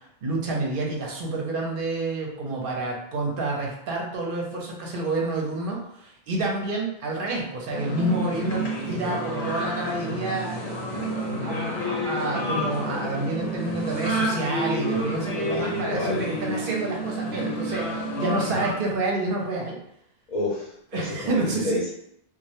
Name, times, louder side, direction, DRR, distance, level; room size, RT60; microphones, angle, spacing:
voice 1, 0.2-10.6 11.4-19.8 20.9-21.8, right 2 dB, 65° right, -1 dB, 0.7 m, -29 dB
sound 1, 7.7-18.7, equal, 75° left, 1.0 m, -29 dB
voice 2, 15.5-16.2 20.3-21.9, left 1 dB, 50° left, -7 dB, 0.7 m, -30 dB
2.1 x 2.1 x 2.8 m, 0.73 s
omnidirectional pair, 1.1 m